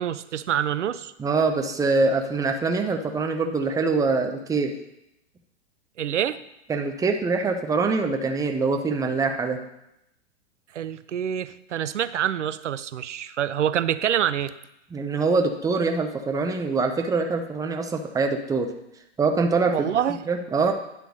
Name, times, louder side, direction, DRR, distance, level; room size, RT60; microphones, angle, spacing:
voice 1, 0.0-1.1 6.0-6.4 10.7-14.5 19.7-20.2, right 10 dB, 90° right, 15 dB, 0.5 m, -26 dB
voice 2, 1.2-4.7 6.7-9.6 14.9-18.7 19.2-19.9 20.3-20.7, right 4 dB, 10° right, 4 dB, 0.6 m, -24 dB
10.0 x 3.4 x 6.2 m, 0.84 s
hypercardioid pair, 115°, 35 cm